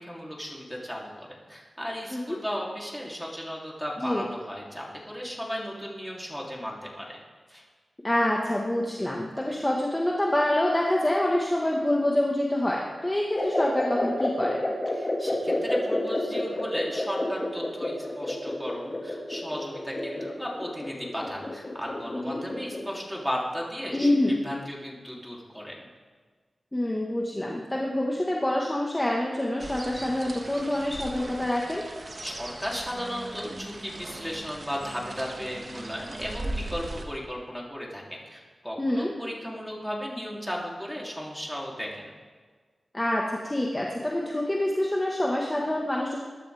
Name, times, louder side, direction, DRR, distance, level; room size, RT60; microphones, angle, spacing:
voice 1, 0.0-7.2 7.5-7.6 14.9-25.8 32.2-42.2, equal, ahead, -3 dB, 3.3 m, -35 dB
voice 2, 8.0-14.6 22.2-22.4 23.9-24.4 26.7-31.8 38.8-39.1 42.9-46.2, left 1 dB, 20° left, -2 dB, 1.6 m, -26 dB
sound 1, 13.3-22.9, left 1 dB, 35° left, 2.3 m, -30 dB
sound 2, 29.6-37.1, right 2 dB, 45° right, 1.5 m, -39 dB
22.0 x 12.0 x 3.6 m, 1.5 s
wide cardioid pair, 75°, 0 cm